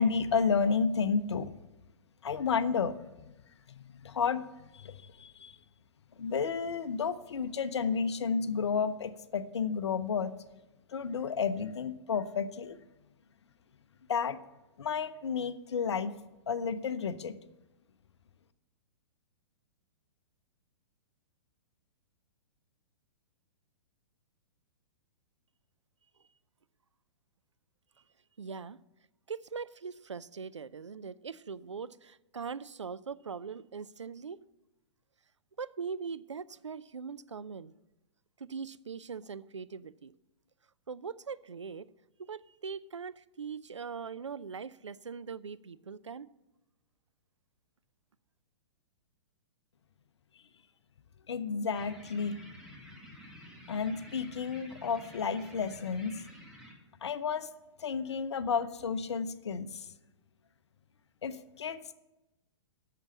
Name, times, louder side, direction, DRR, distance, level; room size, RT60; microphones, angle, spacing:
voice 1, 0.0-1.5 2.2-3.0 3.7-4.4 4.7-5.6 6.2-10.3 10.9-12.8 14.1-14.4 14.8-16.1 16.5-17.4 51.3-52.4 53.7-56.2 57.0-57.5 57.8-59.9 61.2-61.9, left 6 dB, 70° left, 0.7 m, -31 dB
voice 2, 28.4-28.8 29.3-34.4 35.6-37.7 38.4-40.1 40.9-41.9 42.2-46.3, right 5 dB, 85° right, 0.4 m, -41 dB
sound 1, 51.7-56.7, equal, 5° right, 1.9 m, -51 dB
8.1 x 6.9 x 7.3 m
figure-of-eight pair, 115°, 15 cm